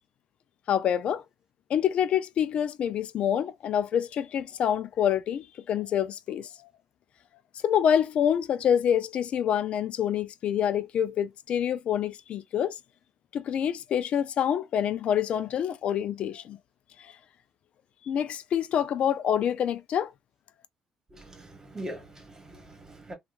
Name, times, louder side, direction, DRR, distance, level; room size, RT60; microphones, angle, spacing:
voice 1, 0.7-1.2 1.7-6.5 7.6-12.7 13.3-16.6 18.1-20.1, left 9 dB, 65° left, 0.4 m, -26 dB
voice 2, 21.1-23.1, right 1 dB, 25° right, 1.4 m, -42 dB
2.9 x 2.4 x 2.4 m
cardioid pair, 95°, 2 cm